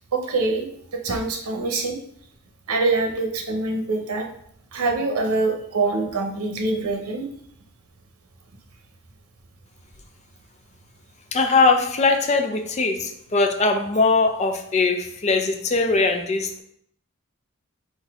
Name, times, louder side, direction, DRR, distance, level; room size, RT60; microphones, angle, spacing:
voice 1, 0.1-0.7 0.9-2.0 2.7-4.3 4.7-7.3, right 3 dB, 85° right, 3 dB, 0.8 m, -24 dB
voice 2, 11.3-16.6, left 3 dB, 30° left, 5 dB, 0.4 m, -21 dB
4.0 x 2.6 x 4.7 m, 0.67 s
head